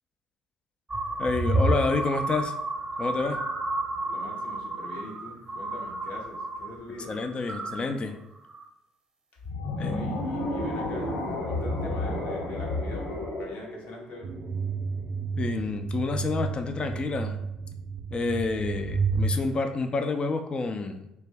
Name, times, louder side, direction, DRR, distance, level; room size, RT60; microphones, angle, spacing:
sound 1, 0.9-6.7 7.0-7.9 8.4-8.6, right 2 dB, 20° right, 0.8 m, -30 dB
voice 1, 1.2-2.5 3.0-3.4 7.1-8.2 9.8-10.0 15.4-17.4 18.1-21.1, left 3 dB, 35° left, 6 dB, 0.3 m, -29 dB
voice 2, 4.0-7.2 9.3-9.4 9.7-14.3, left 2 dB, 60° left, 0 dB, 0.7 m, -43 dB
sound 2, 9.4-14.6, left 1 dB, 75° left, 1.1 m, -31 dB
sound 3, 14.2-19.3, right 5 dB, 50° right, 0.4 m, -31 dB
2.4 x 2.2 x 3.3 m, 0.86 s
hypercardioid pair, 55°, 3 cm